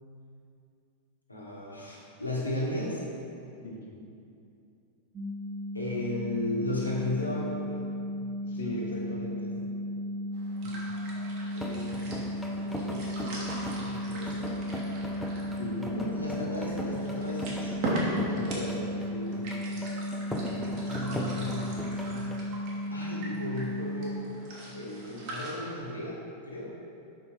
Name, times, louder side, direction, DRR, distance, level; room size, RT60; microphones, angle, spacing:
voice 1, 1.3-3.0 5.7-7.8 8.5-9.5 11.5-12.3 12.6-14.6 15.9-17.7 20.8-22.2 22.9-24.2 24.7-26.2 26.4-26.7, left 1 dB, 85° left, -4 dB, 1.4 m, -36 dB
sound 1, 5.1-24.2, left 1 dB, 30° right, 1.0 m, -35 dB
voice 2, 8.5-9.5 10.6-10.7 15.6-15.9 18.1-19.6, left 1 dB, 60° left, -2 dB, 1.3 m, -38 dB
sound 2, 10.3-25.5, right 1 dB, 50° right, 1.6 m, -40 dB
sound 3, 11.5-22.5, equal, 5° left, 0.7 m, -39 dB
5.8 x 5.5 x 4.5 m, 2.6 s
figure-of-eight pair, 90°, 0 cm